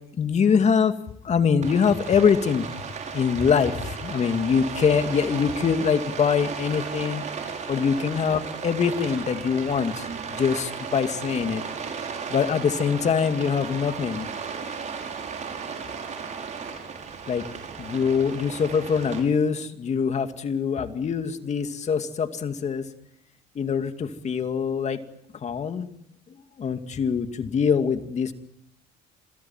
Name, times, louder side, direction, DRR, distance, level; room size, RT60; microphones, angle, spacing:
voice 1, 0.2-0.9 1.2-2.7 3.1-7.3 7.7-11.6 12.3-14.3 17.3-17.5 17.8-22.9 23.5-25.0 25.3-25.9 26.6-28.3, left 6 dB, 40° left, 8 dB, 2.5 m, -24 dB
Rain, 1.6-19.2, right 6 dB, 45° right, 6.6 m, -35 dB
29.0 x 21.5 x 7.4 m, 0.74 s
cardioid pair, 110°, 17 cm